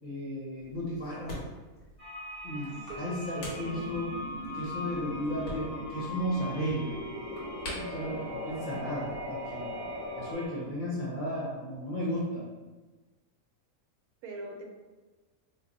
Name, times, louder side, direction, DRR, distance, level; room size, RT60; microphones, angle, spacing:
voice 1, 0.0-1.4 2.4-2.7 3.0-4.1 4.5-6.9 7.7-8.2 8.5-9.7 10.1-12.4, equal, 40° left, -6 dB, 0.8 m, -34 dB
sound 1, 0.6-9.3, equal, 80° left, 1.5 m, -47 dB
sound 2, 2.0-10.5, left 1 dB, 10° right, 0.8 m, -43 dB
voice 2, 2.5-3.9 8.0-8.5 8.7-8.8 14.2-14.7, right 1 dB, 90° right, 1 dB, 1.1 m, -44 dB
sound 3, 3.5-10.3, left 1 dB, 40° right, 0.5 m, -40 dB
3.2 x 2.1 x 3.9 m, 1.2 s
omnidirectional pair, 1.5 m